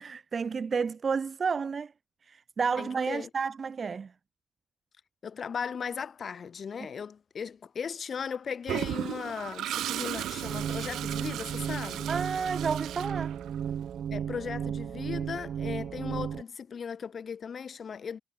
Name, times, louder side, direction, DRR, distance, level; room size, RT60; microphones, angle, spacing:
voice 1, 0.0-1.9 2.2-4.1 12.1-13.4, right 5 dB, 40° right, 0.8 m, -31 dB
voice 2, 2.8-3.3 5.2-12.1 14.1-18.2, left 6 dB, 45° left, 2.6 m, -37 dB
Toilet flush, 8.7-13.7, right 12 dB, 80° right, 0.6 m, -36 dB
sound 1, 10.4-16.4, right 8 dB, 60° right, 2.5 m, -34 dB
cardioid pair, 90°, 0 cm